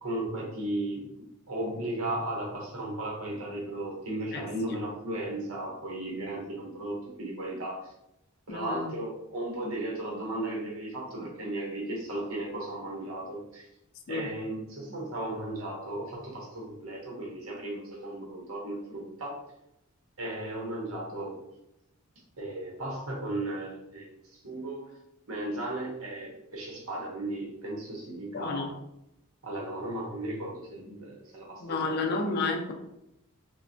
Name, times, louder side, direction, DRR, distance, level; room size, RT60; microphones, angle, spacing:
voice 1, 0.0-7.9 8.5-13.7 14.1-19.4 20.2-21.4 22.4-24.9 25.3-28.7 29.4-32.4, right 1 dB, 70° right, -2 dB, 0.8 m, -35 dB
voice 2, 8.5-8.9 14.1-14.3 28.3-28.7 31.6-32.7, left 3 dB, 50° left, 3 dB, 0.4 m, -31 dB
3.2 x 2.1 x 2.5 m, 0.83 s
head